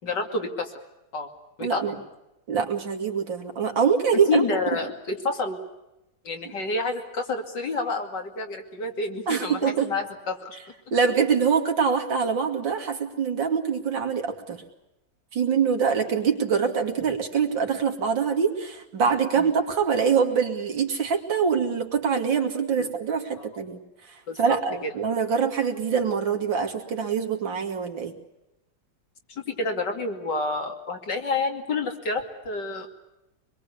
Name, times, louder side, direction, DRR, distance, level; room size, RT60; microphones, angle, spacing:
voice 1, 0.0-0.7 1.1-1.3 1.6-2.0 4.1-5.6 6.2-10.6 19.4-19.5 22.8-22.9 23.4-23.5 24.3-24.9 29.3-32.9, left 3 dB, 70° left, 4 dB, 3.2 m, -29 dB
voice 2, 1.6-1.9 2.5-4.5 9.3-9.9 10.9-14.6 15.3-23.8 24.4-28.1, right 6 dB, 85° right, 4 dB, 3.1 m, -24 dB
25.0 x 22.0 x 8.4 m, 0.91 s
omnidirectional pair, 2.0 m